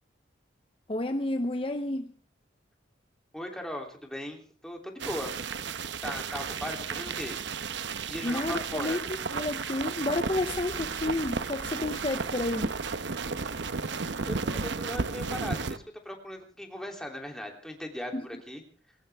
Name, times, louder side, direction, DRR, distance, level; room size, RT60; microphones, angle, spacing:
voice 1, 0.9-2.1 8.2-12.7 18.1-18.3, left 2 dB, 30° left, 0.7 m, -31 dB
voice 2, 3.3-5.4 6.0-7.4 8.1-9.0 14.2-18.6, equal, 5° left, 3.1 m, -38 dB
sound 1, 5.0-15.8, right 5 dB, 65° right, 0.9 m, -33 dB
sound 2, 8.5-14.3, right 2 dB, 90° right, 2.6 m, -49 dB
21.5 x 19.0 x 3.5 m
head